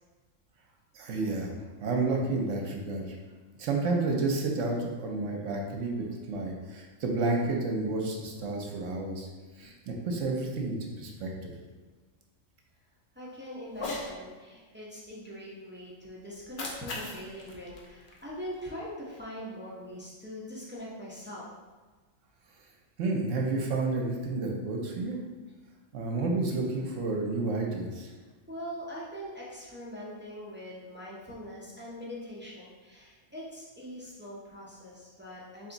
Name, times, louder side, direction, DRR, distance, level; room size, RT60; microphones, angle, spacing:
voice 1, 0.9-1.5 1.8-3.0 3.6-9.3 9.6-11.5 23.0-25.2 25.9-28.1, right 3 dB, 70° right, 0 dB, 1.0 m, -30 dB
voice 2, 13.1-21.5 28.5-35.7, equal, 15° right, -6 dB, 0.4 m, -42 dB
Cat, 13.7-14.1 16.3-18.7, left 2 dB, 55° left, 0.6 m, -39 dB
3.4 x 3.0 x 3.9 m, 1.3 s
omnidirectional pair, 1.4 m